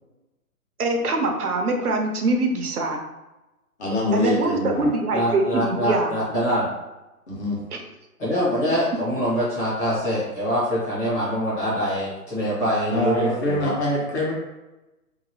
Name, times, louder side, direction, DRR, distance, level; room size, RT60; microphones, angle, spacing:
voice 1, 0.8-3.0 4.1-6.1 7.7-7.8, right 2 dB, 70° right, 3 dB, 0.7 m, -23 dB
voice 2, 3.8-4.9 7.3-7.6 12.9-14.3, left 1 dB, 45° left, -3 dB, 1.1 m, -24 dB
voice 3, 5.1-6.7 8.2-13.7, equal, 10° left, -11 dB, 0.8 m, -24 dB
2.9 x 2.5 x 2.7 m, 1.0 s
figure-of-eight pair, 140°, 46 cm